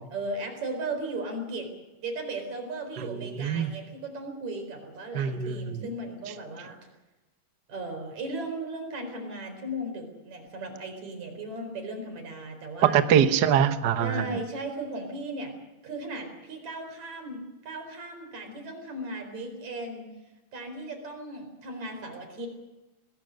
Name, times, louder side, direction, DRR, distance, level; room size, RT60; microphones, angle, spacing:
voice 1, 0.1-1.7 2.0-6.8 7.7-13.0 14.0-15.5 15.8-20.0 20.5-22.5, right 2 dB, 60° right, 5 dB, 5.6 m, -36 dB
voice 2, 3.1-3.7 5.1-5.8 12.8-14.4, right 8 dB, 85° right, 9 dB, 0.9 m, -23 dB
26.0 x 19.0 x 6.5 m, 1.1 s
omnidirectional pair, 3.7 m